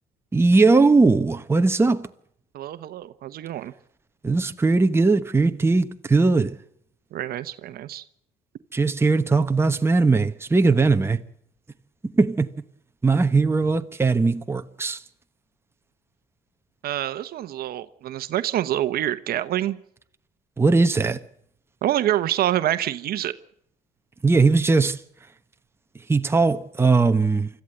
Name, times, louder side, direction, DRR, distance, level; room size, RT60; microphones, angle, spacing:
voice 1, 0.3-2.1 4.2-6.6 8.7-11.2 12.1-12.5 13.0-15.0 20.6-21.2 24.2-25.0 26.1-27.5, right 3 dB, 15° right, 1.0 m, -19 dB
voice 2, 2.5-3.7 7.1-8.0 16.8-19.8 21.8-23.3, right 13 dB, 65° right, 0.9 m, -26 dB
25.0 x 14.0 x 7.8 m
cardioid pair, 110°, 17 cm